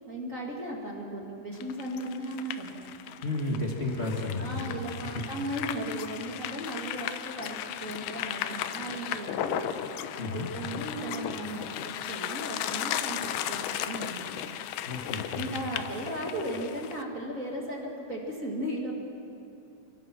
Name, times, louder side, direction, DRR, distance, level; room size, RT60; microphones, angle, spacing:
voice 1, 0.1-2.8 4.4-9.7 10.3-14.3 15.3-18.9, right 1 dB, 25° right, -1 dB, 1.9 m, -36 dB
sound 1, 1.6-17.0, left 11 dB, 85° left, 2.7 m, -36 dB
voice 2, 3.2-4.7 10.2-10.5 14.9-15.5, left 2 dB, 50° left, -2 dB, 0.7 m, -32 dB
27.0 x 20.0 x 6.2 m, 2.7 s
omnidirectional pair, 4.4 m